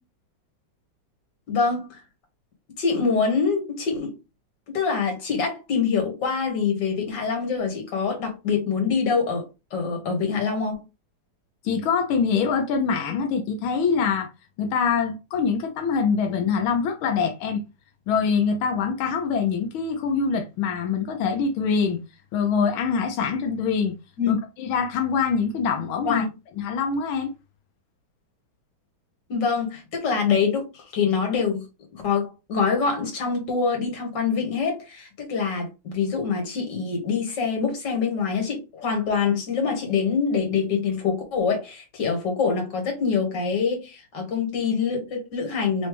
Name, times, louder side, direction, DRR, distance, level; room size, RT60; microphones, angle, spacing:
voice 1, 1.5-1.9 2.8-4.2 4.7-9.4 9.7-10.8 24.2-24.3 26.1-26.3 29.3-31.6 31.9-45.9, left 5 dB, 60° left, 2.1 m, -25 dB
voice 2, 11.6-14.3 14.6-17.6 18.1-22.0 22.3-23.9 24.3-26.3 26.6-27.3, left 6 dB, 90° left, 1.5 m, -24 dB
3.9 x 3.2 x 3.3 m
omnidirectional pair, 2.2 m